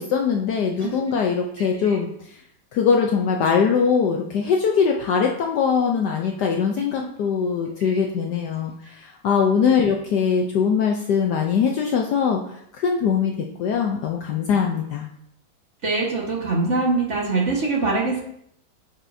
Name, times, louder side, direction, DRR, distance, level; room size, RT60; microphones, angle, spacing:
voice 1, 0.0-2.1 2.7-12.4 12.8-15.1, left 6 dB, 70° left, 2 dB, 1.0 m, -22 dB
voice 2, 1.6-2.0 7.8-8.0 9.6-9.7 15.8-18.2, right 3 dB, 40° right, -2 dB, 1.5 m, -23 dB
8.6 x 5.5 x 2.6 m, 0.72 s
omnidirectional pair, 2.2 m